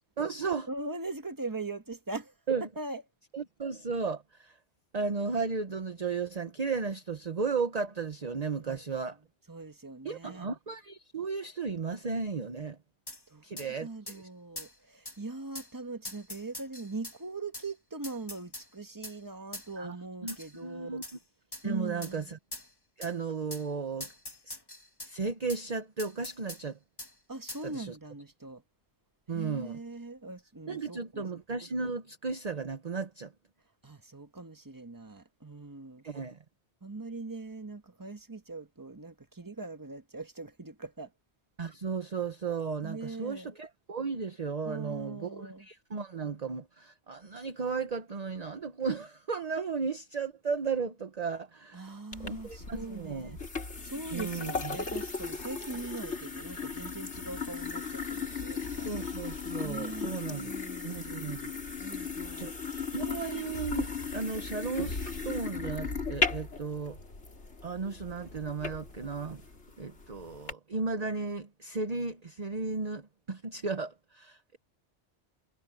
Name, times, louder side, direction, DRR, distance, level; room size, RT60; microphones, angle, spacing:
voice 1, 0.2-0.7 2.5-2.6 3.3-4.6 4.9-9.2 10.0-12.8 13.4-14.2 19.8-20.0 20.2-20.4 20.6-21.0 21.6-22.4 23.0-24.1 24.5-24.6 25.1-26.8 27.6-28.0 29.3-29.8 30.7-33.3 36.0-36.4 41.6-51.9 52.2-53.4 54.1-54.8 58.9-60.5 60.8-61.5 62.3-67.0 67.6-69.4 69.8-74.6, right 5 dB, 40° right, 1.0 m, -35 dB
voice 2, 0.7-2.3 2.8-3.0 8.5-8.8 9.5-10.5 13.3-13.4 13.8-21.0 21.6-22.3 27.3-28.6 29.3-31.3 33.8-36.0 36.8-41.1 42.8-43.5 44.6-45.7 51.7-53.4 53.8-59.1 59.6-60.9 61.8-62.5, right 3 dB, 20° right, 1.4 m, -41 dB
sound 1, 13.1-13.2 13.6-13.7 14.1-14.2 14.6-14.7 15.0-15.2 15.5-15.7 16.0-17.2 17.5-17.7 18.0-18.7 19.0-19.2 19.5-19.7 20.3-20.5 21.0-21.2 21.5-21.6 22.0-22.1 22.5-22.7 23.0-23.1 23.5-23.7 24.0-25.1 25.5-25.6 26.0-26.6 27.0-27.1 27.5-27.6, left 1 dB, 20° left, 1.8 m, -42 dB
sound 2, 52.1-70.5, left 5 dB, 75° left, 3.4 m, -37 dB
omnidirectional pair, 1.1 m